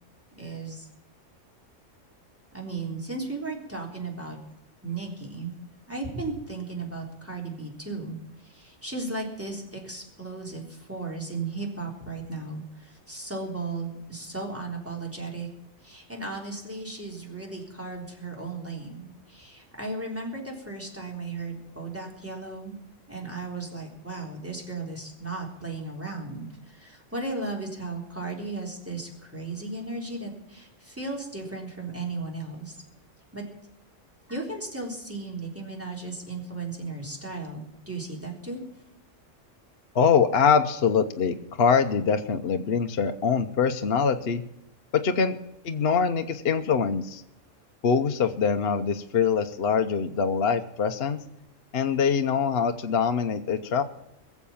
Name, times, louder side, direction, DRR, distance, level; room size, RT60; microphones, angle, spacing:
voice 1, 0.4-0.9 2.5-4.4 4.8-5.5 5.9-15.5 15.8-22.8 23.1-32.8 33.3-33.4 34.3-38.6, right 3 dB, 10° right, -1 dB, 3.6 m, -35 dB
voice 2, 39.9-44.4 44.9-45.4 45.6-47.2 47.8-51.2 51.7-53.8, left 6 dB, 55° left, 6 dB, 1.0 m, -24 dB
22.0 x 7.3 x 7.1 m, 0.82 s
omnidirectional pair, 1.3 m